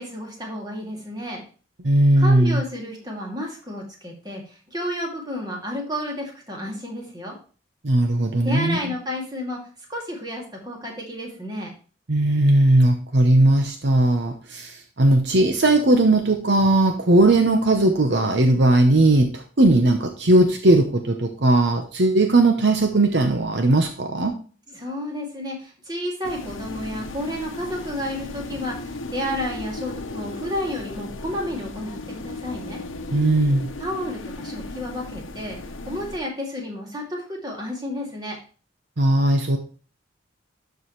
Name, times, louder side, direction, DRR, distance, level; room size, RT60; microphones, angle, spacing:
voice 1, 0.0-1.4 2.2-7.4 8.4-9.6 9.9-11.7 24.7-32.8 33.8-35.6 35.9-38.4, equal, 20° right, -1 dB, 2.4 m, -31 dB
voice 2, 1.8-2.6 7.8-8.9 12.1-24.3 33.1-33.7 39.0-39.6, right 2 dB, 60° right, 5 dB, 0.9 m, -18 dB
sound 1, 26.2-36.2, left 2 dB, 85° left, 0.9 m, -35 dB
12.5 x 4.7 x 3.1 m, 0.38 s
head